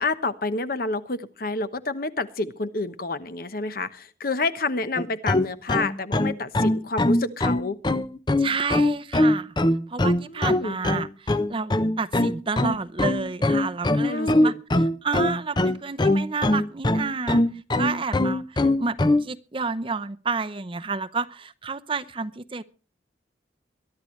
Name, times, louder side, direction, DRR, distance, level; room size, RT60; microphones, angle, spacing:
voice 1, 0.0-7.8 10.2-10.8 14.0-14.5, left 3 dB, 55° left, 11 dB, 1.1 m, -29 dB
sound 1, 5.0-19.2, left 1 dB, 25° left, 0.7 m, -22 dB
voice 2, 8.4-9.5 9.9-14.5 15.0-17.4 17.7-22.6, right 4 dB, 30° right, 12 dB, 0.7 m, -30 dB
22.5 x 12.0 x 3.2 m, 0.35 s
head